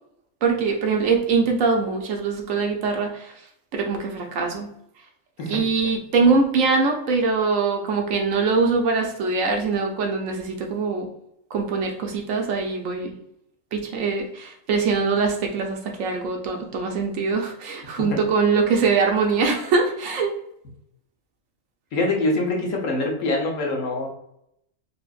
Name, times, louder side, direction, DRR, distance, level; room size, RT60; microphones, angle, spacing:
voice 1, 0.4-3.3 3.7-4.7 5.5-11.1 11.5-13.2 13.7-20.3, right 4 dB, 70° right, 2 dB, 1.0 m, -23 dB
voice 2, 21.9-24.1, left 2 dB, 65° left, 0 dB, 1.2 m, -24 dB
4.1 x 2.8 x 2.4 m, 0.76 s
omnidirectional pair, 1.5 m